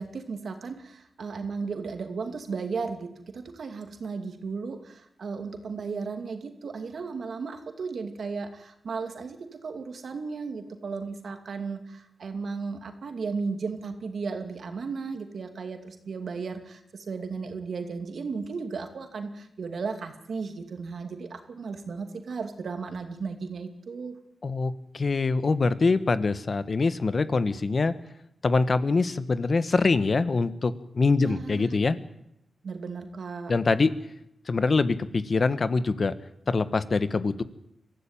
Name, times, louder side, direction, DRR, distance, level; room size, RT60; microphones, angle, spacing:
voice 1, 0.0-24.2 31.2-31.6 32.6-33.5, right 4 dB, 70° right, 7 dB, 2.6 m, -35 dB
voice 2, 24.4-27.9 28.4-32.0 33.5-33.9 34.5-36.1 36.5-37.4, left 4 dB, 50° left, 13 dB, 1.4 m, -24 dB
23.5 x 14.5 x 9.1 m, 0.78 s
cardioid pair, 60°, 0 cm